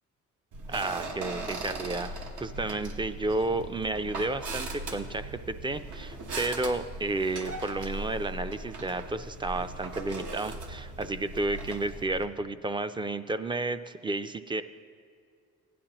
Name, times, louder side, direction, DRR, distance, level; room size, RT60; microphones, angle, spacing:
sound 1, 0.5-12.2, right 2 dB, 80° right, 1.2 m, -39 dB
voice 1, 0.7-14.6, right 2 dB, 15° right, 11 dB, 0.3 m, -32 dB
16.0 x 10.0 x 3.0 m, 2.2 s
cardioid pair, 90°, 30 cm